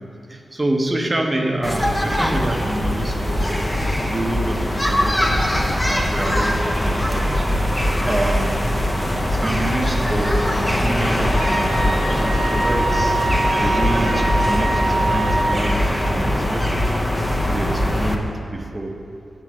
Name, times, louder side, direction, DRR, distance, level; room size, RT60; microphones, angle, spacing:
voice 1, 0.0-3.5 4.1-7.8 8.0-8.6 9.3-13.2 13.6-17.0 17.5-18.9, right 1 dB, 25° right, 2 dB, 0.7 m, -27 dB
sound 1, 1.6-18.2, equal, 15° left, 0.5 m, -21 dB
Wind instrument woodwind instrument, 11.3-15.6, right 2 dB, 35° left, 1.2 m, -24 dB
7.5 x 4.4 x 6.3 m, 2.7 s
wide cardioid pair, 115°, 0 cm